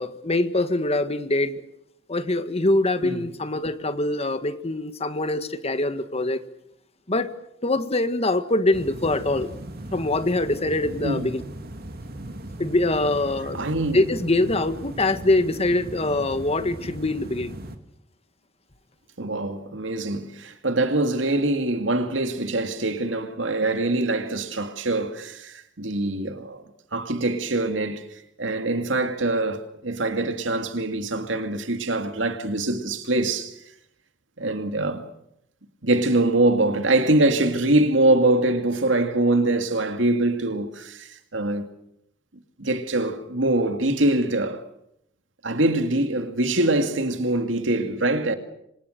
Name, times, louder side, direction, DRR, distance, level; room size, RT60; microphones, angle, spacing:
voice 1, 0.0-1.6 2.1-6.4 7.1-7.3 7.6-9.5 9.9-11.4 12.6-13.6 13.9-17.5, left 2 dB, 35° left, 1.7 m, -24 dB
sound 1, 8.7-17.8, right 1 dB, 55° right, 2.5 m, -38 dB
voice 2, 13.5-14.0 19.2-26.6 26.9-28.1 28.4-33.6 34.4-35.0 35.8-41.7 42.6-44.6 45.4-48.4, right 2 dB, 80° right, 2.3 m, -23 dB
27.0 x 26.0 x 6.7 m
head